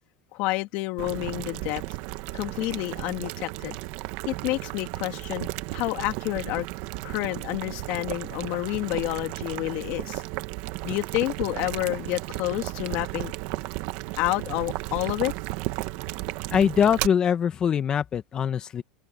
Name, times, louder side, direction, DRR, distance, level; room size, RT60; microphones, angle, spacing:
voice 1, 0.3-1.8 2.3-3.8 4.3-6.7 7.0-10.2 10.8-13.3 14.2-15.3, left 20 dB, 55° left, 2.7 m, -29 dB
Boiling, 1.0-17.1, right 21 dB, 60° right, 1.4 m, -34 dB
voice 2, 16.5-18.8, left 8 dB, 30° left, 1.7 m, -23 dB
open air
supercardioid pair, 135°, 3 cm